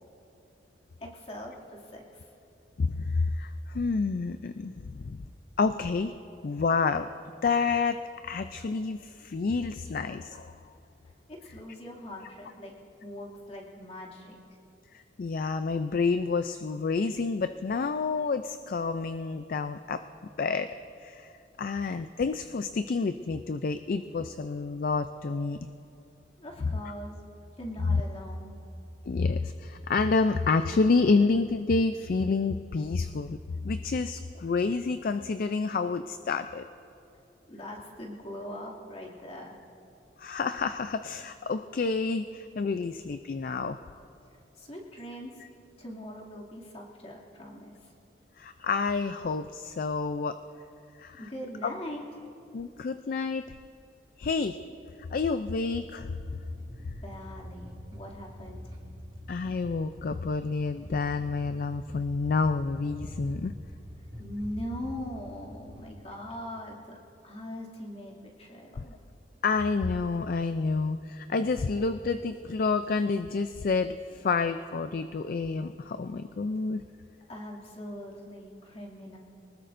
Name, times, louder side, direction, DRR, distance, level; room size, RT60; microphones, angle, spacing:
voice 1, 1.0-2.3 11.0-12.7 13.0-14.6 26.4-27.2 27.6-28.5 37.5-39.6 44.5-45.3 45.8-47.9 51.1-52.0 57.0-58.7 64.2-67.0 67.2-69.0 77.3-79.2, left 1 dB, 35° left, -3 dB, 2.5 m, -41 dB
voice 2, 2.8-5.2 5.6-6.1 6.4-7.1 7.4-10.5 14.9-20.0 20.4-20.7 21.0-21.3 21.6-25.6 26.6-26.7 27.9-28.0 29.1-33.4 33.6-36.6 40.2-43.8 48.4-50.4 51.0-51.2 51.6-51.7 52.5-53.4 54.2-54.6 55.1-56.1 59.3-63.5 69.4-76.8, left 4 dB, 50° left, 10 dB, 0.4 m, -29 dB
sound 1, 56.1-65.9, equal, 25° right, 1.8 m, -44 dB
24.0 x 19.5 x 2.6 m, 2.7 s
head